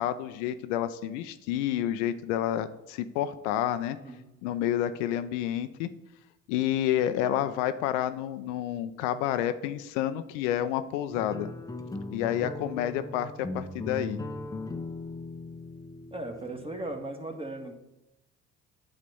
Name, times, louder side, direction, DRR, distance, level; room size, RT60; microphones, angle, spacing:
voice 1, 0.0-4.0 4.4-5.9 6.5-11.5 12.1-14.2, left 11 dB, 80° left, 11 dB, 0.5 m, -29 dB
sound 1, 11.1-17.0, left 2 dB, 10° left, 0.7 m, -39 dB
voice 2, 16.1-17.7, right 2 dB, 15° right, 3 dB, 1.6 m, -37 dB
8.6 x 4.0 x 6.9 m, 0.93 s
hypercardioid pair, 55°, 35 cm